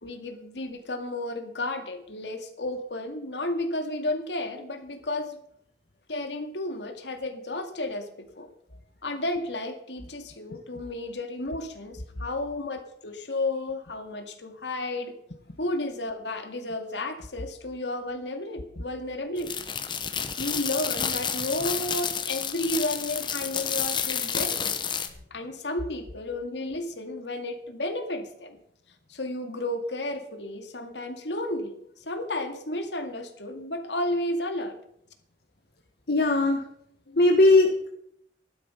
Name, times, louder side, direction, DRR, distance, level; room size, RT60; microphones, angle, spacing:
voice 1, 0.0-5.4 6.1-8.5 9.0-15.2 15.6-19.6 20.4-24.8 25.3-28.6 29.1-34.8 37.1-37.2, left 1 dB, 90° left, 6 dB, 2.2 m, -32 dB
sound 1, 19.4-25.1, left 7 dB, 25° left, 1.1 m, -30 dB
voice 2, 36.1-36.6 37.2-37.9, left 2 dB, 65° left, 2 dB, 1.4 m, -19 dB
14.0 x 12.0 x 5.7 m, 0.71 s
head